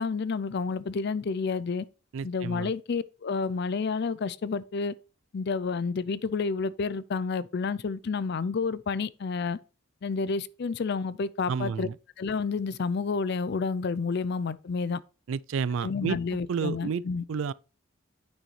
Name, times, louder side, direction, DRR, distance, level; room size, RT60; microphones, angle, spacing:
voice 1, 0.0-1.9 2.2-4.9 5.3-9.6 10.0-11.9 12.2-15.0 15.8-17.2, left 4 dB, 50° left, 0.4 m, -30 dB
voice 2, 2.1-2.7 11.5-11.9 15.3-16.2 16.5-17.0 17.3-17.5, right 6 dB, 65° right, 0.4 m, -30 dB
9.1 x 6.3 x 3.2 m
head